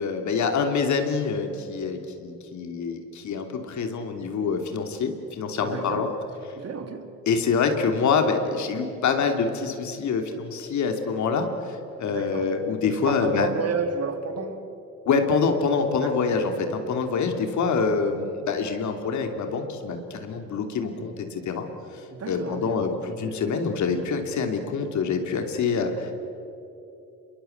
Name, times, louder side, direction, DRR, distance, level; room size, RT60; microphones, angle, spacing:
voice 1, 0.0-6.1 7.3-13.5 15.1-21.7 22.3-26.1, left 5 dB, 70° left, 3.0 m, -26 dB
voice 2, 5.6-6.1 6.5-7.2 12.1-12.5 12.8-14.8 16.0-16.3 22.1-23.4, right 5 dB, 55° right, 2.9 m, -33 dB
27.0 x 22.5 x 8.1 m
cardioid pair, 90°, 30 cm